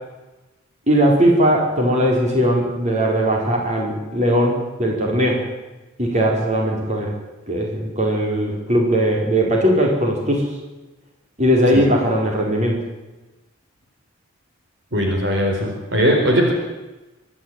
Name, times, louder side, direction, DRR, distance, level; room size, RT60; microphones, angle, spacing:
voice 1, 0.9-5.4 6.0-7.1 7.5-10.4 11.4-12.8, equal, 35° right, 0 dB, 4.7 m, -19 dB
voice 2, 14.9-16.5, equal, 55° right, 1 dB, 4.0 m, -19 dB
25.0 x 11.5 x 9.1 m, 1.1 s
head